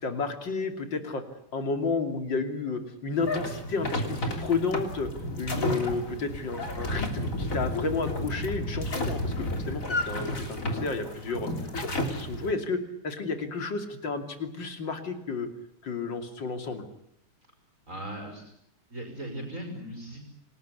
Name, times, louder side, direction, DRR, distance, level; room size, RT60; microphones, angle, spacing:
voice 1, 0.0-1.2 1.5-5.1 5.4-11.5 11.7-12.8 13.0-15.5 15.8-16.8, left 4 dB, 55° left, 7 dB, 3.4 m, -31 dB
sound 1, 3.2-12.5, left 1 dB, 35° left, 3.7 m, -32 dB
voice 2, 17.9-18.4 18.9-20.2, right 1 dB, 35° right, 2 dB, 5.7 m, -38 dB
28.0 x 19.5 x 9.6 m, 0.77 s
omnidirectional pair, 2.4 m